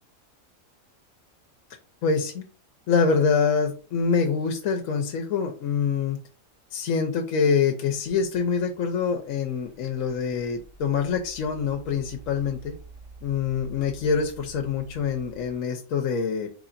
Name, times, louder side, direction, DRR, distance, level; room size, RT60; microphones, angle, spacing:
voice 1, 2.0-2.4 2.9-6.2 6.7-12.7 13.2-16.5, left 5 dB, 70° left, 4 dB, 1.0 m, -25 dB
sound 1, 9.4-15.5, right 3 dB, 60° right, 1.0 m, -47 dB
4.0 x 3.2 x 2.5 m, 0.36 s
omnidirectional pair, 1.6 m